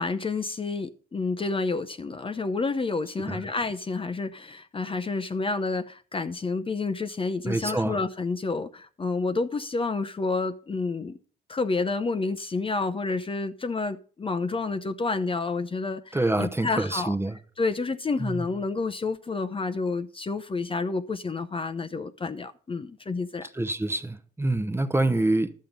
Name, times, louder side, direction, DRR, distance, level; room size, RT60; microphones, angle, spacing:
voice 1, 0.0-11.2 11.5-17.1 17.6-23.5, left 3 dB, 25° left, 0.7 m, -29 dB
voice 2, 7.4-8.0 16.1-17.4 18.2-18.5 23.4-25.5, right 2 dB, 10° right, 0.9 m, -26 dB
11.5 x 7.5 x 5.3 m
cardioid pair, 90°, 20 cm